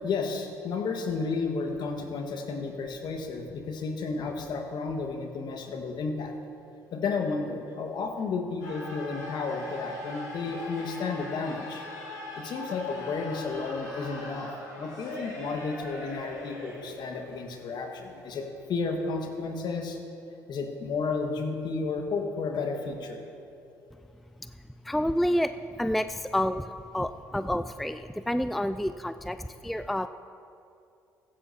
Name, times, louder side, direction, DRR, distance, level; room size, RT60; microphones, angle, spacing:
voice 1, 0.0-6.3 6.9-11.8 12.3-14.5 14.8-20.0 20.5-23.2, left 4 dB, 55° left, 4 dB, 1.6 m, -32 dB
sound 1, 8.6-19.5, left 2 dB, 85° left, 2.8 m, -41 dB
voice 2, 24.8-30.1, equal, ahead, 11 dB, 0.3 m, -29 dB
15.0 x 15.0 x 2.8 m, 2.6 s
hypercardioid pair, 55°, 9 cm